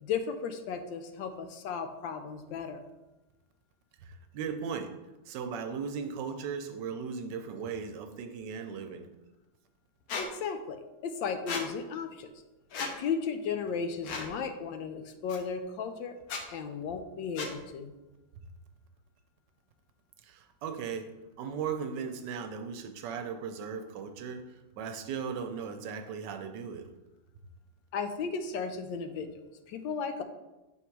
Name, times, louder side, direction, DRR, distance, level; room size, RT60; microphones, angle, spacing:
voice 1, 0.0-2.8 10.2-12.3 13.0-16.1 16.5-17.9 27.9-29.3 29.7-30.2, left 6 dB, 80° left, 8 dB, 1.3 m, -35 dB
voice 2, 4.0-4.9 5.3-9.1 20.2-21.1 21.4-24.4 24.8-26.9, right 6 dB, 75° right, 7 dB, 1.2 m, -37 dB
Squeak, 10.1-10.3 11.5-11.6 12.7-12.9 14.0-14.3 15.3-15.4 16.2-16.4 17.4-17.5, left 4 dB, 60° left, 1.1 m, -35 dB
5.9 x 3.6 x 4.5 m, 1.0 s
omnidirectional pair, 2.0 m